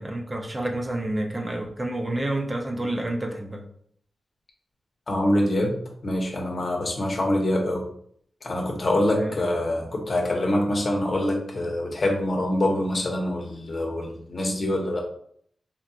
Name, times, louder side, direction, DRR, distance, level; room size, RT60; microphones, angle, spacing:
voice 1, 0.0-3.6 9.1-9.3, right 1 dB, 25° right, 2 dB, 0.5 m, -29 dB
voice 2, 5.1-5.8 6.0-7.8 8.4-15.0, left 1 dB, 50° left, 0 dB, 0.9 m, -25 dB
3.6 x 2.7 x 2.4 m, 0.64 s
cardioid pair, 80°, 0 cm